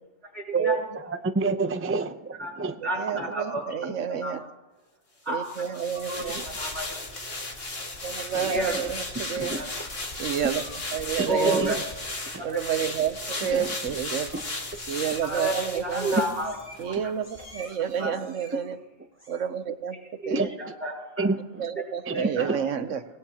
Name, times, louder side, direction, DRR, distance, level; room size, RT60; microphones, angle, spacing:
voice 1, 0.3-0.8 2.4-2.5 2.8-3.6 4.2-4.3 5.3-5.4 6.1-6.9 8.4-8.7 9.5-9.7 11.3-11.8 15.2-16.5 16.8-17.1 18.0-18.1 20.2-21.3 22.1-22.5, right 1 dB, 55° right, -4 dB, 5.7 m, -30 dB
voice 2, 1.1-2.8 3.2-3.3 3.8-3.9 6.3-6.4 8.4-8.8 9.4-9.6 11.2-11.7 12.3-12.4 13.5-13.7 18.0-18.1 20.3-20.5 21.2-21.6 22.1-22.6, right 4 dB, 15° right, 8 dB, 0.5 m, -28 dB
voice 3, 2.9-4.4 5.3-6.4 8.0-9.6 10.2-10.6 10.9-11.8 12.4-14.3 14.9-16.3 16.8-18.8 19.3-20.0 20.3-20.5 21.6-23.0, right 8 dB, 75° right, 11 dB, 1.2 m, -30 dB
sound 1, 5.4-17.0 17.4-17.5, left 2 dB, 50° left, 2.3 m, -35 dB
Meow, 8.0-8.4 8.7-9.4 10.1-10.9 11.9-12.3 12.6-13.0 13.7-14.4 14.7-15.5 16.4-16.9 17.2-17.7 18.1-18.7 19.1-19.5, equal, 10° left, 4.8 m, -49 dB
25.0 x 18.0 x 2.9 m, 0.96 s
omnidirectional pair, 1.3 m